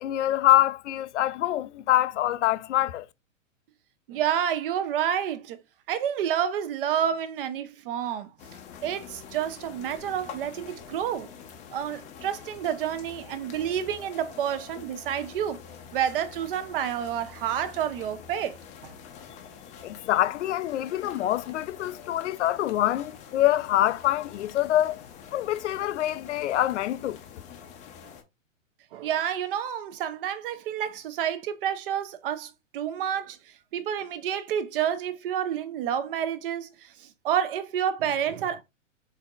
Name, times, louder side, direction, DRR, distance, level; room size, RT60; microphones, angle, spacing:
voice 1, 0.0-3.1 19.8-25.0 25.3-27.2, left 13 dB, 65° left, 0.5 m, -25 dB
voice 2, 4.1-5.6 5.9-8.3 8.8-11.3 11.7-15.6 15.9-18.9 28.9-33.4 33.7-38.6, right 9 dB, 45° right, 0.7 m, -29 dB
sound 1, 8.4-28.2, left 7 dB, 20° left, 0.5 m, -46 dB
4.5 x 3.4 x 2.4 m
hypercardioid pair, 125°, 39 cm